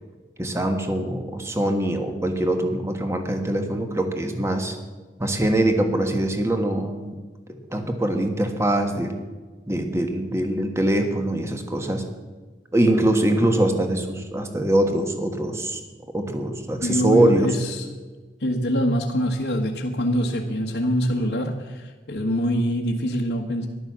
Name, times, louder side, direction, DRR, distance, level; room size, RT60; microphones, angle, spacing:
voice 1, 0.4-4.8 5.2-7.2 7.5-9.1 9.7-12.0 12.7-15.8 16.1-17.5, right 1 dB, 15° right, 5 dB, 1.5 m, -23 dB
voice 2, 16.8-17.8 18.4-23.7, equal, 80° left, -3 dB, 1.4 m, -24 dB
14.5 x 11.5 x 7.4 m, 1.4 s
head